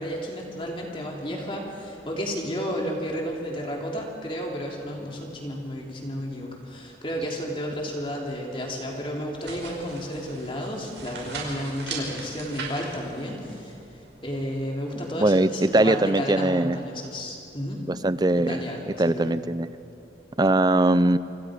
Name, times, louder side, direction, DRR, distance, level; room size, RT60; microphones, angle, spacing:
voice 1, 0.0-13.7 14.2-17.8 18.4-18.8 19.0-19.3, equal, 30° left, -1 dB, 3.2 m, -32 dB
sound 1, 9.4-15.1, right 4 dB, 90° right, 5.8 m, -39 dB
voice 2, 15.2-16.8 17.9-18.6 19.0-19.7 20.4-21.2, right 1 dB, 25° right, 15 dB, 0.5 m, -21 dB
29.0 x 26.5 x 5.1 m, 2.6 s
head